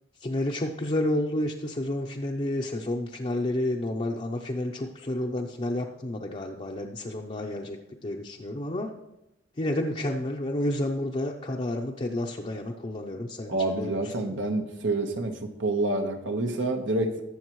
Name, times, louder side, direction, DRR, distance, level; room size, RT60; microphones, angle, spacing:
voice 1, 0.2-8.9 9.6-14.4, left 1 dB, 35° left, -1 dB, 0.7 m, -30 dB
voice 2, 13.5-15.3 15.6-17.2, right 2 dB, 80° right, 4 dB, 1.3 m, -27 dB
20.0 x 7.2 x 3.1 m, 0.90 s
head